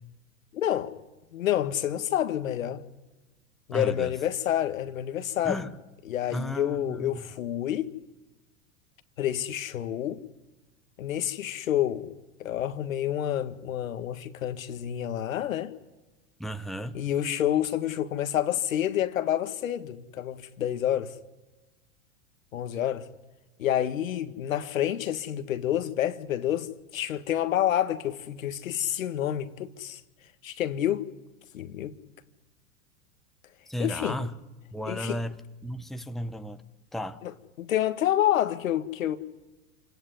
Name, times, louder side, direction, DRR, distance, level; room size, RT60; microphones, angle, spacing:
voice 1, 0.5-0.9 1.3-2.8 3.7-5.6 6.0-7.9 9.2-10.2 11.0-12.1 12.4-15.7 16.9-21.1 22.5-23.1 23.6-30.0 30.4-31.1 31.5-31.9 33.8-34.2 34.8-35.2 37.2-37.3 37.6-39.2, left 11 dB, 80° left, 1.8 m, -28 dB
voice 2, 3.7-4.1 5.4-5.7 6.3-7.3 16.4-17.0 33.7-34.4 34.7-36.6 36.9-37.2, equal, ahead, 1.2 m, -34 dB
27.5 x 18.0 x 10.0 m
hypercardioid pair, 105°, 39 cm